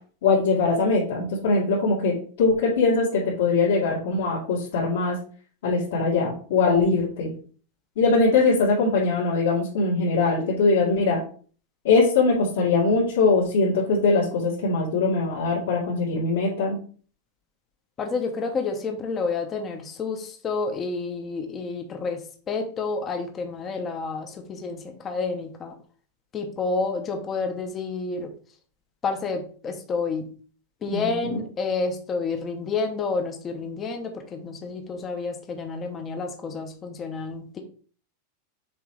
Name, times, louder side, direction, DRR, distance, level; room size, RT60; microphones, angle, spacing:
voice 1, 0.2-5.2 5.6-7.3 8.0-11.2 11.8-16.8 30.9-31.4, left 3 dB, 65° left, -9 dB, 2.7 m, -22 dB
voice 2, 18.0-22.2 22.5-25.7 26.3-28.3 29.0-30.3 30.8-37.6, left 4 dB, 15° left, 5 dB, 0.8 m, -29 dB
7.0 x 3.0 x 4.9 m, 0.43 s
supercardioid pair, 180°, 0 cm